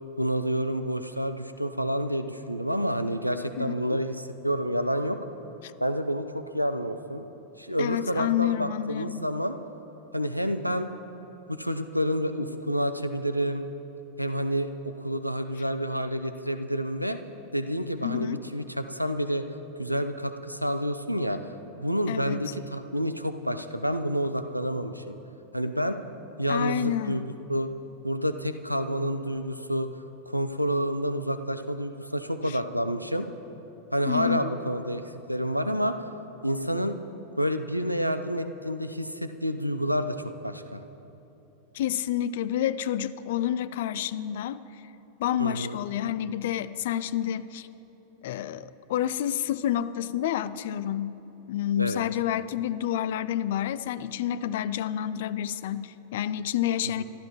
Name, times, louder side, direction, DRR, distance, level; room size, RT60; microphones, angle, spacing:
voice 1, 0.2-5.2 5.8-7.3 7.6-9.5 10.1-10.9 11.5-13.6 14.2-17.2 17.5-19.4 19.8-21.5 21.8-25.2 25.5-26.0 26.4-27.2 27.5-27.7 28.0-29.9 30.3-33.3 33.9-35.0 35.3-36.1 36.4-37.0 37.4-40.8 45.4-45.8 51.8-52.1 57.0-57.1, equal, 90° right, 9 dB, 0.6 m, -29 dB
voice 2, 3.6-4.0 7.8-9.3 18.0-18.4 22.1-22.4 26.5-27.2 32.5-32.6 34.1-34.4 41.7-44.6 45.2-47.7 48.2-51.2 51.5-57.0, left 11 dB, 55° left, 16 dB, 0.5 m, -29 dB
25.0 x 12.5 x 3.0 m, 3.0 s
figure-of-eight pair, 90°, 0 cm